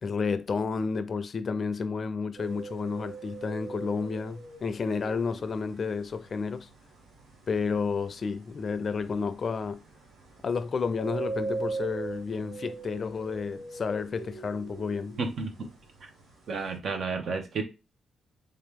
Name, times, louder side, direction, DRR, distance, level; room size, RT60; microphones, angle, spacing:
voice 1, 0.0-6.7 7.5-9.8 10.4-15.2, left 5 dB, 50° left, 0.4 m, -31 dB
sound 1, 2.4-16.8, right 4 dB, 90° right, 1.3 m, -41 dB
voice 2, 15.2-15.7 16.5-17.6, right 4 dB, 65° right, 0.9 m, -31 dB
3.5 x 2.8 x 3.6 m
cardioid pair, 75°, 0 cm